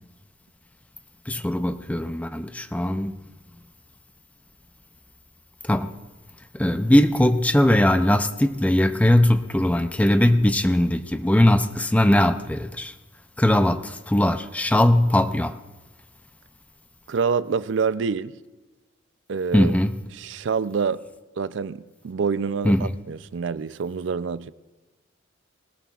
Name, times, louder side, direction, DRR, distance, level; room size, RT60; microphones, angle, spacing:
voice 1, 1.3-3.2 5.6-5.9 6.5-12.9 13.4-15.5 19.5-20.0 22.6-22.9, left 1 dB, 5° left, 0.4 m, -20 dB
voice 2, 17.1-18.3 19.3-19.8 20.2-21.0 21.4-24.5, right 5 dB, 70° right, 0.4 m, -26 dB
20.5 x 18.5 x 2.4 m
head